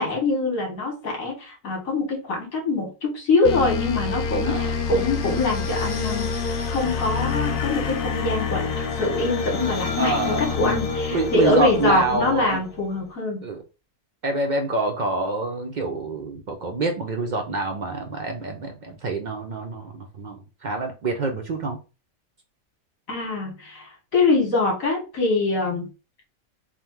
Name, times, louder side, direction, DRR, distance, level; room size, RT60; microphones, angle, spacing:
voice 1, 0.0-6.3 6.7-8.7 9.0-13.4 23.1-25.9, left 3 dB, 75° left, -2 dB, 1.8 m, -24 dB
sound 1, 3.4-12.9, left 5 dB, 55° left, 0.6 m, -27 dB
voice 2, 4.4-4.7 10.0-10.6 11.1-12.6 13.4-13.6 14.2-21.8, right 3 dB, 75° right, 3 dB, 0.4 m, -27 dB
3.7 x 2.1 x 4.3 m, 0.31 s
omnidirectional pair, 1.4 m